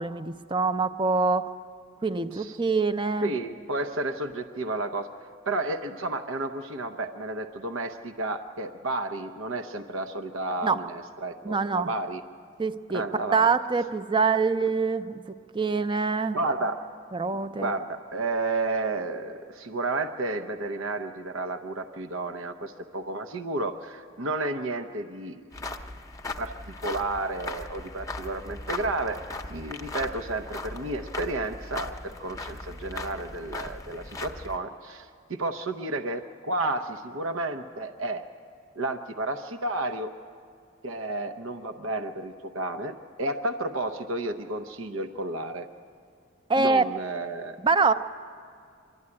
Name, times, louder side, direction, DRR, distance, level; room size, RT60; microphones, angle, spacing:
voice 1, 0.0-1.5 2.0-3.3 10.6-10.8 11.4-11.9 12.6-13.0 13.3-15.2 15.5-16.4 17.1-17.8 46.5-46.9 47.6-47.9, right 4 dB, 25° right, 11 dB, 0.5 m, -24 dB
voice 2, 3.2-5.1 5.5-12.2 12.9-13.5 16.3-16.9 17.6-25.4 26.4-26.5 26.8-29.2 29.5-38.2 38.8-40.1 40.8-45.7 46.6-47.6, right 2 dB, 80° right, 8 dB, 0.8 m, -31 dB
sound 1, 25.5-34.6, left 2 dB, 15° left, 0.7 m, -38 dB
24.5 x 12.5 x 9.7 m, 2.3 s
head